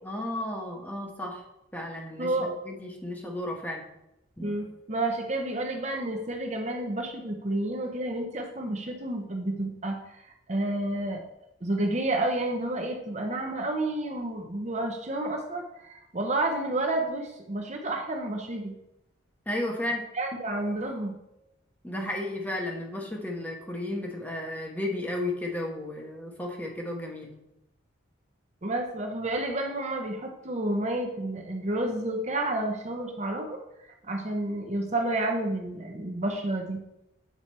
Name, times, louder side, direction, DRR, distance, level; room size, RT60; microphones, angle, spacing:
voice 1, 0.0-1.4 1.7-2.3 2.6-3.8 4.4-4.6 19.5-20.1 21.8-27.3, left 1 dB, 10° left, 0 dB, 1.1 m, -33 dB
voice 2, 2.2-2.5 4.4-10.2 10.5-11.2 11.6-18.7 20.1-21.2 21.9-22.1 28.6-33.6 34.0-36.8, right 1 dB, 35° right, 3 dB, 0.8 m, -30 dB
8.3 x 4.9 x 4.2 m, 0.86 s
head